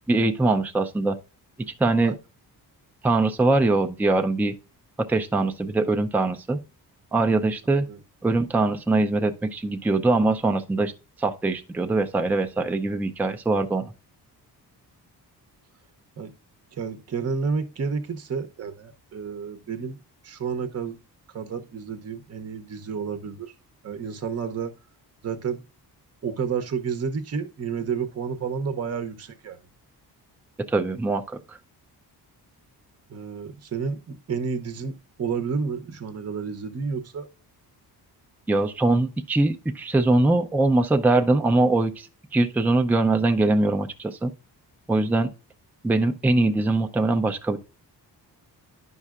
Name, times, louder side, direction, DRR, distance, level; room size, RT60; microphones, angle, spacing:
voice 1, 0.1-1.2 1.8-2.2 3.0-4.5 5.1-6.6 7.1-7.9 8.2-10.9 11.2-13.9 30.7-31.6 38.5-44.3 44.9-45.3 45.8-47.6, right 2 dB, 5° right, 0.5 m, -22 dB
voice 2, 16.7-20.0 20.2-21.0 21.3-23.5 23.8-24.7 25.2-25.6 26.2-29.6 33.1-37.3, right 5 dB, 40° right, 0.8 m, -30 dB
10.5 x 5.5 x 2.4 m
cardioid pair, 115°, 40 cm